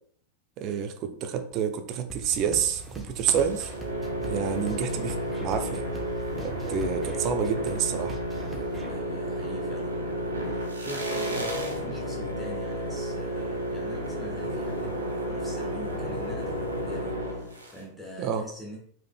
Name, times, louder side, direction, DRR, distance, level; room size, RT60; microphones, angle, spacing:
voice 1, 0.6-3.7 4.3-5.2 5.4-5.8 6.4-8.2 18.2-18.4, right 8 dB, 40° right, 0.6 m, -28 dB
sound 1, 2.1-8.9, right 1 dB, 10° right, 1.0 m, -42 dB
sound 2, 3.2-17.8, right 1 dB, 80° right, 0.9 m, -32 dB
voice 2, 4.4-4.8 8.8-18.8, equal, 10° left, 1.3 m, -44 dB
4.9 x 4.4 x 2.3 m
figure-of-eight pair, 90°, 0 cm